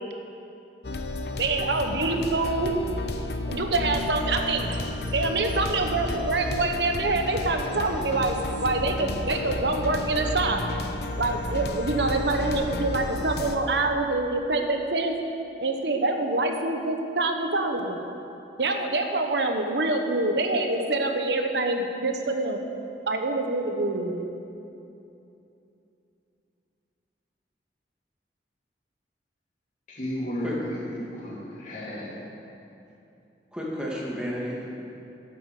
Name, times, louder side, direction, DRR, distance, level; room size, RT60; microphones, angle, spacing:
sound 1, 0.8-13.6, left 1 dB, 60° left, 0.7 m, -32 dB
voice 1, 1.4-2.7 3.5-4.7 5.1-8.4 8.6-10.6 11.2-15.1 15.6-18.0 18.6-22.6 23.0-24.3, right 2 dB, 75° right, 4 dB, 1.1 m, -26 dB
voice 2, 29.9-32.2, equal, 45° left, -6 dB, 3.2 m, -33 dB
voice 3, 33.5-34.8, equal, 5° right, -5 dB, 2.1 m, -32 dB
11.5 x 9.0 x 6.6 m, 2.8 s
head